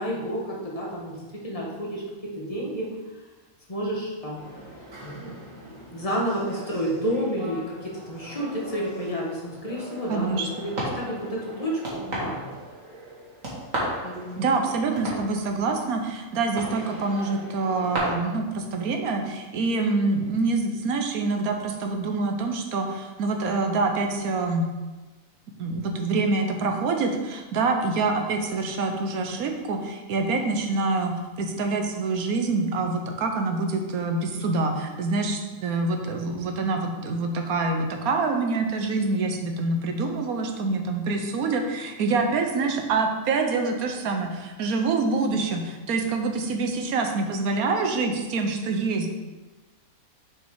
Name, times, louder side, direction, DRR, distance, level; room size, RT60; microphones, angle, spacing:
voice 1, 0.0-2.9 3.7-4.4 5.0-12.5 14.0-14.6, equal, 25° left, -4 dB, 1.5 m, -31 dB
sound 1, 4.4-18.0, right 1 dB, 65° right, 2.3 m, -37 dB
voice 2, 10.1-10.5 14.4-24.7 25.6-49.1, right 3 dB, 85° right, 4 dB, 1.3 m, -26 dB
6.3 x 5.3 x 4.8 m, 1.2 s
omnidirectional pair, 1.5 m